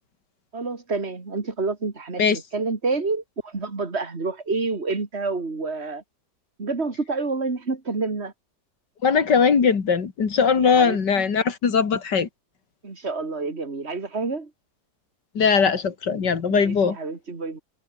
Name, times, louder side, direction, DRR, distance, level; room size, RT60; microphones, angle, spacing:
voice 1, 0.5-6.0 6.6-8.3 10.6-11.0 12.8-14.5 16.5-17.6, right 3 dB, 35° right, 2.9 m, -28 dB
voice 2, 9.0-12.3 15.3-17.0, left 6 dB, 80° left, 2.9 m, -20 dB
omnidirectional pair, 1.8 m